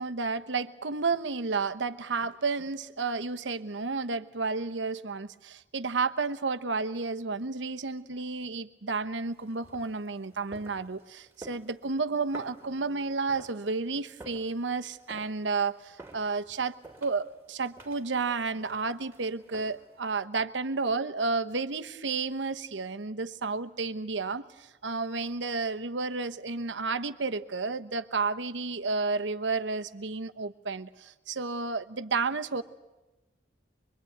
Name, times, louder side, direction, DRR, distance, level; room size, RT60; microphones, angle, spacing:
voice 1, 0.0-16.7 17.0-32.6, right 4 dB, 85° right, 9 dB, 1.0 m, -31 dB
sound 1, 9.3-20.0, right 2 dB, 15° right, 2.6 m, -52 dB
24.0 x 23.5 x 9.3 m, 1.0 s
head